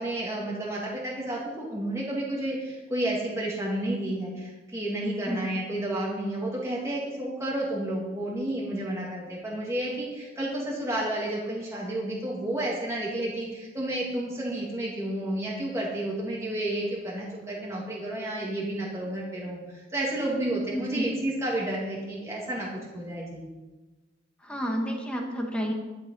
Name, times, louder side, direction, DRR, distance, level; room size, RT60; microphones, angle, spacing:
voice 1, 0.0-23.4, right 1 dB, 15° right, -5 dB, 2.1 m, -31 dB
voice 2, 20.7-21.1 24.4-25.7, equal, 5° left, 0 dB, 1.5 m, -30 dB
11.5 x 9.0 x 5.5 m, 1.2 s
head